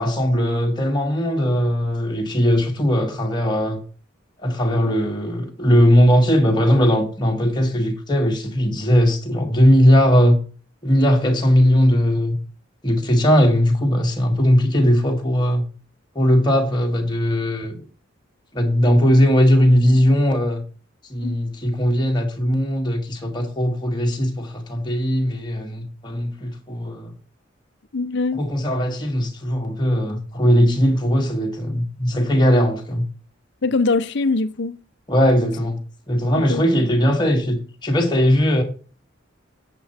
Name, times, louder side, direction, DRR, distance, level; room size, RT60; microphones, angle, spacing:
voice 1, 0.0-3.8 4.4-10.4 10.8-12.4 12.8-15.6 16.2-17.8 18.5-20.6 21.1-27.1 28.4-33.0 35.1-35.8 36.1-38.6, equal, 20° left, 1.7 m, -19 dB
voice 2, 27.9-28.4 33.6-34.8 36.4-36.6, left 3 dB, 60° left, 0.7 m, -22 dB
8.0 x 7.7 x 4.3 m
head